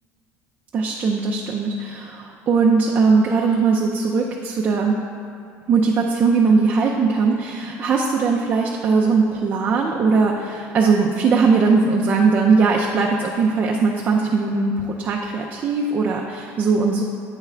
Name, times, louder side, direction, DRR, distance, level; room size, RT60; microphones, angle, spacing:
voice 1, 0.7-5.0 5.7-17.0, right 4 dB, 30° right, -1 dB, 0.4 m, -19 dB
8.9 x 3.6 x 3.2 m, 2.5 s
cardioid pair, 165°, 6 cm